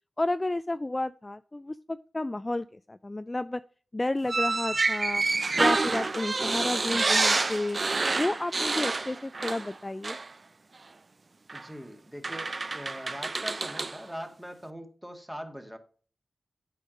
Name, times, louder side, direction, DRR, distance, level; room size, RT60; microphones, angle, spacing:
voice 1, 0.2-3.6 3.9-5.2 5.6-7.8 8.2-10.2, left 2 dB, 30° left, 13 dB, 0.3 m, -31 dB
sound 1, 4.3-9.8 10.0-10.3 11.5-11.6 12.2-14.0, right 3 dB, 50° right, 0.5 m, -28 dB
voice 2, 11.5-15.8, equal, 5° right, 6 dB, 1.7 m, -41 dB
8.3 x 5.4 x 5.1 m, 0.41 s
cardioid pair, 45°, 0 cm